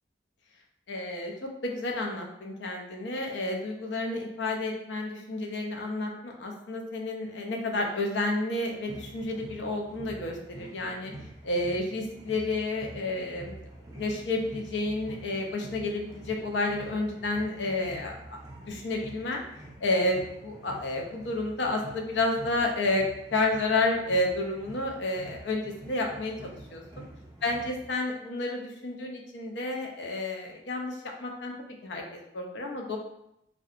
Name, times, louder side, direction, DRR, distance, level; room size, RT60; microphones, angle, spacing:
voice 1, 0.9-11.1 11.4-18.2 18.6-19.4 19.8-23.1 23.3-27.0 27.4-31.5 31.8-32.0 32.3-33.0, left 2 dB, 85° left, 1 dB, 0.5 m, -30 dB
sound 1, 8.8-27.9, right 1 dB, 20° right, 0.4 m, -47 dB
2.7 x 2.2 x 2.4 m, 0.81 s
head